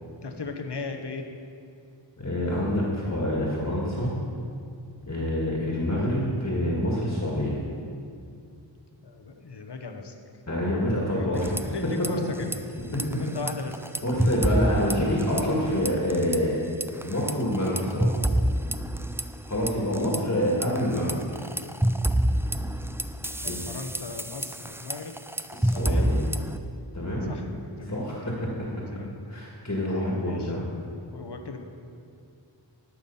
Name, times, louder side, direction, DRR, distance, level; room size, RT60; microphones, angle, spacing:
voice 1, 0.2-1.3 9.0-10.2 11.1-12.6 13.2-13.9 23.2-25.1 25.6-26.1 27.3-28.5 28.9-29.1 30.2-30.5 31.1-31.6, left 4 dB, 60° left, 5 dB, 1.0 m, -37 dB
voice 2, 2.2-4.1 5.1-7.6 10.5-11.6 12.9-13.0 14.0-16.7 17.0-18.2 19.4-21.4 23.4-23.6 25.5-26.2 26.9-27.3 27.8-28.5 29.3-30.6, left 1 dB, 35° left, -4 dB, 2.0 m, -27 dB
sound 1, 11.3-12.1 12.4-12.6 12.9-15.6 15.9-16.4 16.8-20.2 20.6-26.6, right 1 dB, 5° right, 0.4 m, -27 dB
13.0 x 6.0 x 5.6 m, 2.4 s
wide cardioid pair, 40°, 45 cm